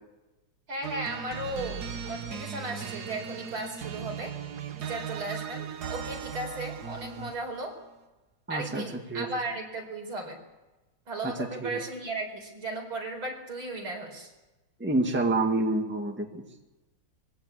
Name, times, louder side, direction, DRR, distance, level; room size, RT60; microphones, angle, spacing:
voice 1, 0.7-4.4 4.8-7.8 8.5-10.4 11.1-14.3, right 2 dB, 75° right, 2 dB, 5.2 m, -36 dB
sound 1, 0.8-7.5, right 7 dB, 55° right, 1.6 m, -37 dB
voice 2, 8.5-9.3 11.4-11.8 14.8-16.4, right 2 dB, 5° right, 2 dB, 1.9 m, -28 dB
23.0 x 16.5 x 8.4 m, 1.1 s
omnidirectional pair, 2.3 m